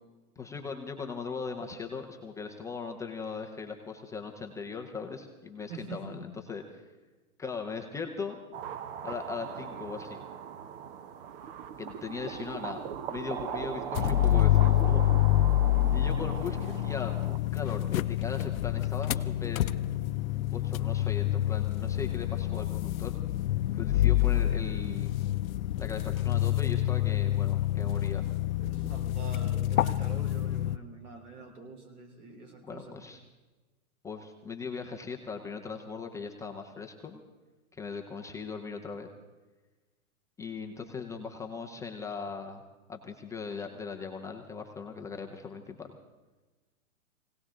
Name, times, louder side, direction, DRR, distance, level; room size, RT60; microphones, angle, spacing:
voice 1, 0.4-6.8 7.4-8.4 9.0-10.2 11.8-12.8 13.1-15.0 15.9-19.7 20.4-23.2 23.7-25.1 25.8-28.3 32.7-33.2 34.0-37.2 37.7-39.1 40.4-42.6 42.9-45.9, left 5 dB, 5° left, 2 dB, 0.6 m, -39 dB
voice 2, 5.7-6.2 16.3-16.4 22.5-22.7 28.6-33.0, right 4 dB, 85° right, 3 dB, 3.8 m, -45 dB
sound 1, 8.5-17.4, right 7 dB, 40° right, 0.9 m, -39 dB
sound 2, 14.0-30.8, left 14 dB, 70° left, 0.6 m, -27 dB
20.5 x 17.5 x 3.7 m, 1.2 s
hypercardioid pair, 135°, 43 cm